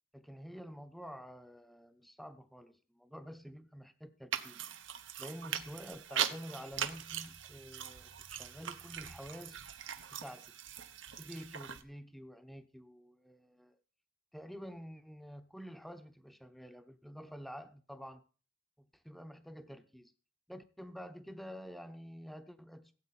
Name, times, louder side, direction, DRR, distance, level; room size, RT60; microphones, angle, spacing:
voice 1, 0.1-4.7 5.2-9.6 10.1-10.5 11.2-13.8 14.3-18.2 18.8-20.1 20.5-22.9, equal, ahead, 9 dB, 0.8 m, -49 dB
sound 1, 4.3-11.8, right 9 dB, 80° right, 1.0 m, -41 dB
16.5 x 8.2 x 4.1 m, 0.38 s
head